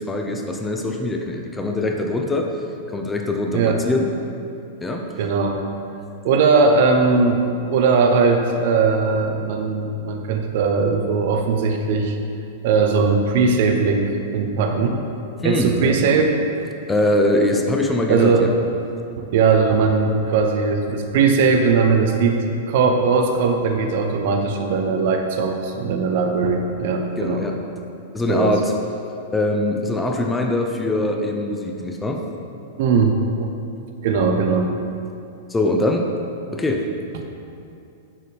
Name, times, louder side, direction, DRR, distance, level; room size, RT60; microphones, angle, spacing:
voice 1, 0.0-2.6 2.9-4.1 4.8-5.1 15.4-16.0 16.9-18.5 27.2-27.6 28.1-28.7 29.3-32.2 35.5-36.1 36.5-36.9, left 1 dB, 10° left, 2 dB, 0.8 m, -22 dB
voice 2, 5.2-5.6 6.2-12.2 12.6-15.0 15.4-16.4 18.1-18.5 19.2-22.4 22.7-27.5 28.3-28.5 32.8-33.5 34.0-34.7, right 4 dB, 50° right, 4 dB, 0.8 m, -19 dB
10.5 x 6.6 x 3.4 m, 2.7 s
figure-of-eight pair, 100°, 0 cm